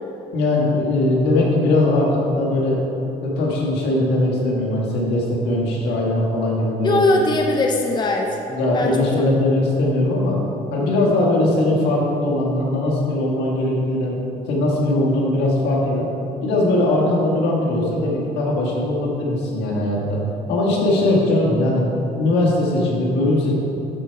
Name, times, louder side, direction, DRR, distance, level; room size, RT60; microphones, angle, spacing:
voice 1, 0.3-2.8 3.2-7.0 8.5-10.4 10.7-14.2 14.5-16.1 16.4-20.2 20.5-21.8 22.1-23.5, left 1 dB, 80° left, -3 dB, 1.9 m, -20 dB
voice 2, 6.8-8.4 8.7-9.3, left 2 dB, 25° left, 2 dB, 0.7 m, -20 dB
12.0 x 4.6 x 4.8 m, 2.9 s
cardioid pair, 110°, 17 cm